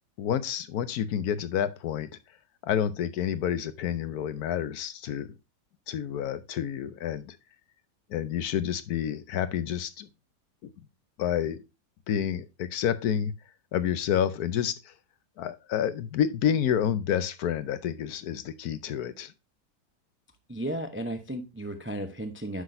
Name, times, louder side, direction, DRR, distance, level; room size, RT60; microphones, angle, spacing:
voice 1, 0.2-2.1 2.6-5.3 5.9-7.4 8.1-10.1 10.6-10.7 11.2-11.6 12.1-13.3 13.7-14.9 15.4-19.3, left 9 dB, 70° left, 1.2 m, -29 dB
voice 2, 20.5-22.6, right 1 dB, 20° right, 0.3 m, -34 dB
9.7 x 6.0 x 2.6 m
omnidirectional pair, 1.8 m